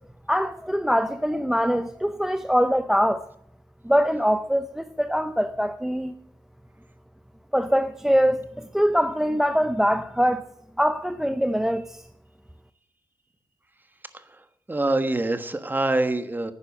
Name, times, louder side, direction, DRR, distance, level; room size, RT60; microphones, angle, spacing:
voice 1, 0.3-3.2 3.8-6.1 7.5-10.5 10.8-12.0, equal, 5° right, 0.5 m, -23 dB
voice 2, 14.7-16.5, right 2 dB, 20° right, 1.3 m, -25 dB
11.0 x 9.9 x 8.4 m
wide cardioid pair, 105°, 9 cm